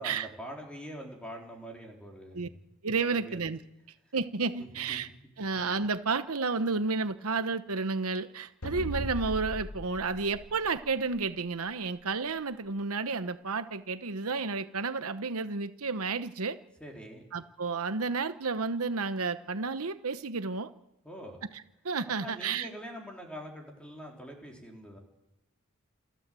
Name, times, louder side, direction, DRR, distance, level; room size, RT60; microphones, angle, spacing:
voice 1, 0.0-2.6 3.1-3.4 4.6-5.0 5.4-5.5 16.8-17.2 21.0-21.4 22.2-25.0, equal, 5° left, 0 dB, 3.7 m, -44 dB
voice 2, 2.8-3.6 4.1-5.1 5.4-16.6 17.3-20.7 21.8-22.7, right 4 dB, 80° right, 10 dB, 1.0 m, -31 dB
sound 1, 8.6-11.3, equal, 80° left, 2.2 m, -38 dB
28.5 x 12.0 x 7.7 m, 0.90 s
head